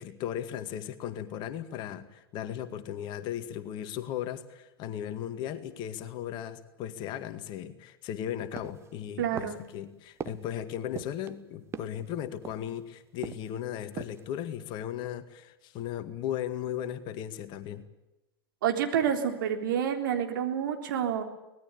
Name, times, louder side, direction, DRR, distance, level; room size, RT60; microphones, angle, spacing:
voice 1, 0.0-17.8, left 10 dB, 35° left, 11 dB, 2.0 m, -36 dB
sound 1, 8.6-9.0 9.4-9.7 10.2-10.5 11.0-11.3 11.7-12.1 12.4-12.8 13.2-13.6 13.9-14.3 14.7-14.8, right 7 dB, 20° right, 1.2 m, -41 dB
voice 2, 9.2-9.6 18.6-21.2, right 8 dB, 55° right, 5 dB, 3.7 m, -28 dB
25.0 x 19.5 x 8.6 m, 0.97 s
figure-of-eight pair, 95°, 13 cm